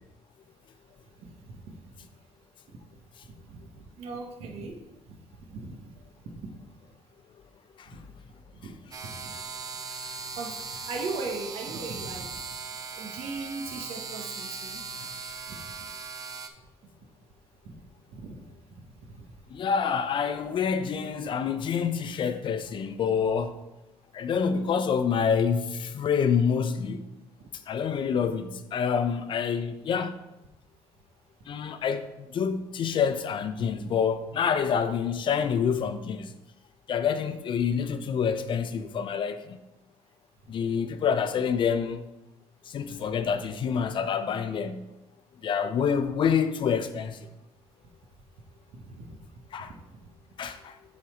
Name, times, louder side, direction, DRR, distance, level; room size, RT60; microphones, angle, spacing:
voice 1, 1.2-1.6 2.0-2.1 3.2-4.7 5.5-5.9 6.4-6.5 8.5-8.7 9.0-9.3 10.4-10.5 10.9-12.4 13.0-14.8 15.5-15.6 17.6-17.8 18.1-18.4 48.7-49.1 49.9-50.0, right 3 dB, 75° right, 1.2 m, -38 dB
sound 1, 8.9-16.5, right 4 dB, 35° right, 0.8 m, -39 dB
voice 2, 9.9-10.2 15.0-15.1 19.5-23.6 24.1-27.1 27.7-30.2 31.5-36.3 36.9-39.6 40.5-42.1 42.6-44.9 45.4-47.3 49.5-49.7 50.4-50.8, left 7 dB, 50° left, 0.7 m, -27 dB
7.5 x 4.1 x 5.0 m
cardioid pair, 110°, 11 cm